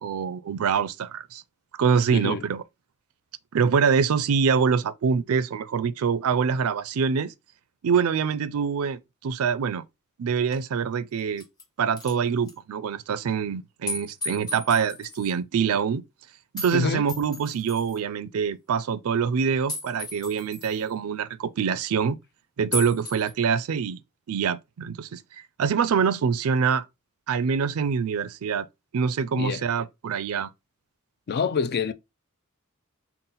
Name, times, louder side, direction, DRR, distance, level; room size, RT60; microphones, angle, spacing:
voice 1, 0.0-1.4 1.8-2.6 3.5-7.3 7.8-9.8 10.2-11.5 11.8-16.0 16.5-22.2 22.6-24.0 24.3-25.2 25.6-26.9 27.3-28.7 28.9-30.5, right 6 dB, 75° right, 0.4 m, -25 dB
voice 2, 2.1-2.4 16.7-17.1 29.4-29.6 31.3-31.9, left 5 dB, 50° left, 0.4 m, -26 dB
sound 1, 10.5-10.6 11.2-11.6 12.0-12.1 12.5-12.6 13.9-15.3 16.6-16.7 17.1-18.0 19.7-20.8 22.7-23.3, left 2 dB, 20° left, 0.9 m, -35 dB
3.9 x 2.1 x 3.9 m
head